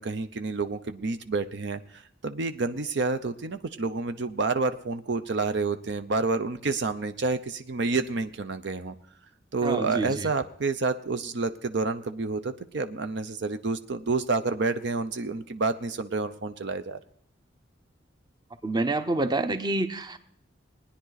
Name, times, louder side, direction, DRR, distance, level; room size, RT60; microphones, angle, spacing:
voice 1, 0.0-8.9 9.5-17.0, right 3 dB, 65° right, 10 dB, 0.7 m, -29 dB
voice 2, 9.6-10.3 18.6-20.2, right 2 dB, 20° right, 10 dB, 0.8 m, -27 dB
19.5 x 10.0 x 4.0 m, 0.64 s
head